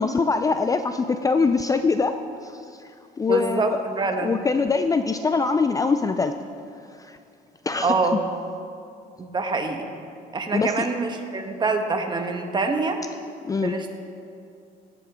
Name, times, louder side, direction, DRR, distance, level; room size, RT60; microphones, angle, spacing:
voice 1, 0.0-2.2 2.4-3.8 4.2-6.4 6.9-7.2 7.6-7.9 10.5-10.9 13.4-13.8, left 4 dB, 20° left, 9 dB, 0.5 m, -23 dB
voice 2, 3.3-4.4 7.8-8.2 9.2-9.9 10.3-13.0 13.6-13.9, right 3 dB, 25° right, 4 dB, 1.4 m, -25 dB
17.5 x 8.4 x 5.1 m, 2.5 s
cardioid pair, 110°, 17 cm